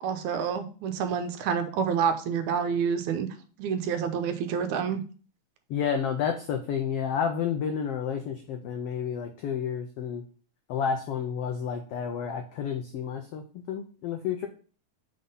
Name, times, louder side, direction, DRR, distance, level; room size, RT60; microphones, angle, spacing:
voice 1, 0.0-3.3 3.6-5.0, right 7 dB, 80° right, 7 dB, 2.0 m, -28 dB
voice 2, 5.7-10.2 10.7-14.5, left 7 dB, 90° left, 5 dB, 1.3 m, -30 dB
6.0 x 3.8 x 5.3 m, 0.39 s
omnidirectional pair, 3.5 m